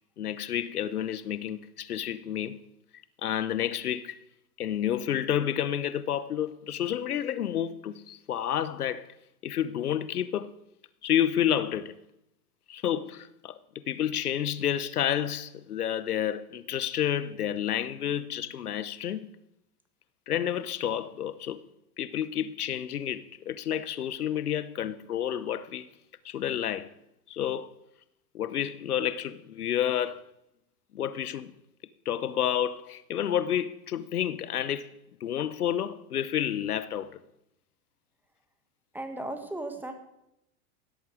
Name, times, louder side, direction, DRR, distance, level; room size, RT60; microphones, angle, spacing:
voice 1, 0.2-2.6 3.2-4.2 4.6-9.1 9.4-10.5 11.0-11.9 12.7-19.3 20.3-21.6 22.0-25.9 26.2-26.9 27.3-27.7 28.3-30.3 30.9-31.5 32.1-34.9 35.2-37.2, left 10 dB, 80° left, 0.9 m, -30 dB
voice 2, 38.9-39.9, right 1 dB, 5° right, 1.9 m, -36 dB
16.5 x 12.5 x 4.9 m
hypercardioid pair, 95°, 44 cm